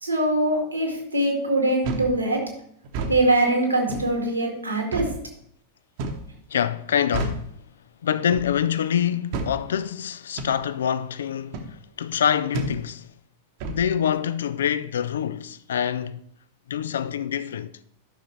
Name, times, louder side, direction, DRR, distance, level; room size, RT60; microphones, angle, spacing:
voice 1, 0.0-2.4 3.1-5.1, right 1 dB, 85° right, 2.0 m, -22 dB
sound 1, 1.8-2.1 2.8-3.2 3.9-4.1 4.9-5.2 6.0-6.3 7.1-7.5 8.3-8.6 9.3-9.6 10.4-10.6 11.5-11.7 12.5-12.8 13.6-13.8, right 3 dB, 50° right, 1.0 m, -30 dB
voice 2, 6.5-7.5 8.0-13.1 13.7-16.2 16.7-17.7, left 9 dB, 65° left, 0.4 m, -25 dB
12.0 x 6.0 x 3.2 m
figure-of-eight pair, 90°, 0 cm